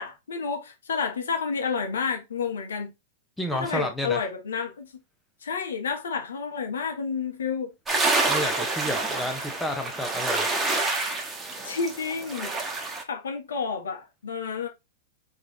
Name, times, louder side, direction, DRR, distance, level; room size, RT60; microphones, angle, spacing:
voice 1, 0.0-2.9 3.5-4.9 5.4-7.7 11.6-12.5 13.1-14.7, left 5 dB, 85° left, 1.3 m, -30 dB
voice 2, 3.4-4.3 8.3-10.5, equal, 5° left, 0.6 m, -31 dB
sound 1, 7.9-13.0, right 3 dB, 15° right, 1.1 m, -27 dB
3.6 x 3.3 x 3.7 m
hypercardioid pair, 120°, 0 cm